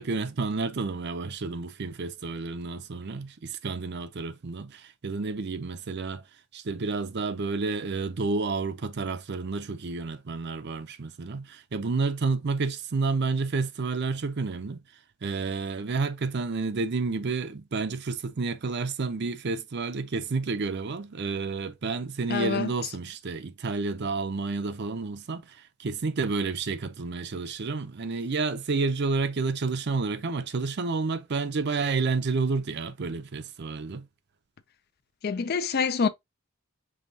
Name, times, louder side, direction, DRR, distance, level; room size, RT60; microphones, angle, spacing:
voice 1, 0.0-6.2 6.5-14.8 15.2-34.1, right 4 dB, 50° right, 0.5 m, -30 dB
voice 2, 22.3-22.7 35.2-36.1, left 5 dB, 45° left, 0.4 m, -26 dB
5.5 x 3.4 x 2.7 m
head